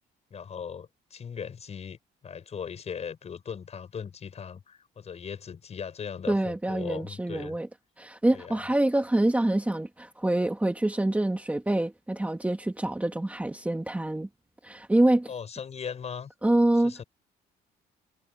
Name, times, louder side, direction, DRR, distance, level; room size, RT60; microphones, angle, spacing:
voice 1, 0.3-2.0 2.2-7.5 8.3-8.7 15.3-16.3 16.7-17.0, left 7 dB, 40° left, 7.1 m, -38 dB
voice 2, 6.3-7.7 8.0-14.3 14.6-15.3 16.4-16.9, right 1 dB, 10° right, 2.1 m, -26 dB
cardioid pair, 110°, 17 cm